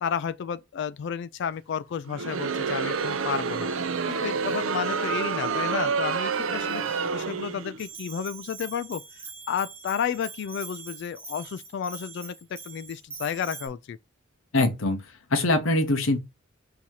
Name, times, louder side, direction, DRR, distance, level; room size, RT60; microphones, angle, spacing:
voice 1, 0.0-3.7 4.1-9.0 9.5-14.0, left 7 dB, 60° left, 0.3 m, -32 dB
Crowd, 2.1-7.8, right 5 dB, 70° right, 0.6 m, -28 dB
Bell, 7.8-13.7, right 5 dB, 10° right, 0.9 m, -43 dB
voice 2, 14.5-15.0 15.3-16.2, left 2 dB, 75° left, 0.9 m, -23 dB
4.0 x 2.8 x 4.5 m
head